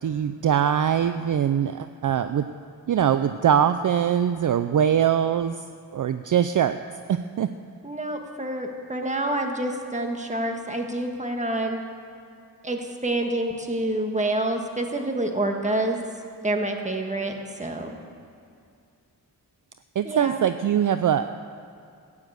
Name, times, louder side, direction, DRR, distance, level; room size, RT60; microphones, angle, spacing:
voice 1, 0.0-2.4 2.9-5.6 5.9-6.8 7.1-7.5 20.0-21.3, right 9 dB, 55° right, 10 dB, 0.5 m, -22 dB
voice 2, 7.8-11.8 12.6-16.0 16.4-17.3 17.6-18.0 20.0-20.4, right 1 dB, 20° right, 3 dB, 1.6 m, -27 dB
15.0 x 9.7 x 8.0 m, 2.4 s
wide cardioid pair, 110°, 38 cm